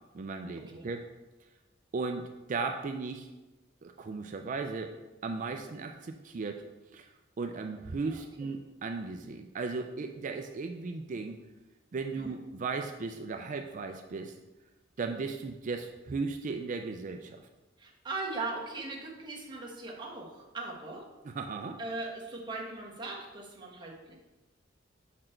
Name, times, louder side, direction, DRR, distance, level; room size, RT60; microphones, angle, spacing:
voice 1, 0.1-1.0 1.9-3.3 3.8-4.9 5.2-6.6 6.9-7.1 7.4-11.4 11.9-14.3 15.0-17.4 21.2-21.8, right 4 dB, 40° right, 5 dB, 0.4 m, -36 dB
voice 2, 17.8-21.1 21.8-24.2, right 3 dB, 25° right, -3 dB, 1.2 m, -39 dB
6.4 x 4.2 x 4.4 m, 1.1 s
head